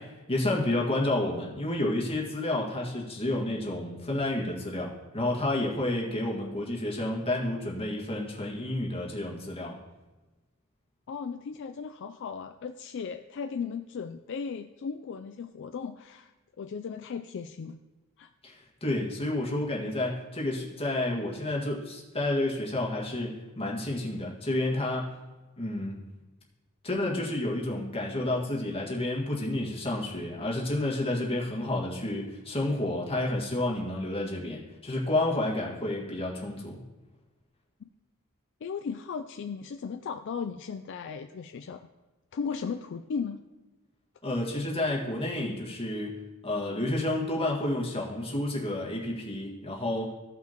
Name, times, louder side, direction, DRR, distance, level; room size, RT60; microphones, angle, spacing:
voice 1, 0.0-9.7 18.4-25.1 25.6-25.9 26.8-36.8 44.2-50.1, left 1 dB, 25° left, -2 dB, 1.8 m, -30 dB
voice 2, 11.1-17.8 18.2-18.3 37.8-37.9 38.6-41.9 42.3-43.4, left 6 dB, 55° left, 7 dB, 0.4 m, -36 dB
15.5 x 5.8 x 2.9 m, 1.1 s
head